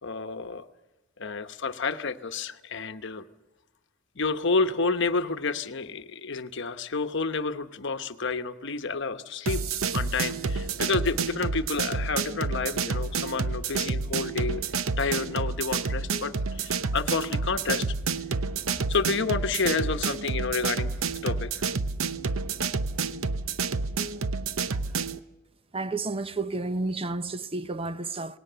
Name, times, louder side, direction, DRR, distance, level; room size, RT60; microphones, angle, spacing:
voice 1, 0.0-0.6 1.2-3.3 4.1-9.6 9.9-14.6 15.0-17.9 18.9-20.9 21.2-21.6, left 4 dB, 60° left, 1.0 m, -29 dB
sound 1, 9.5-25.2, right 4 dB, 85° right, 0.8 m, -29 dB
voice 2, 25.7-28.4, right 3 dB, 30° right, 0.8 m, -31 dB
28.0 x 19.0 x 6.8 m
head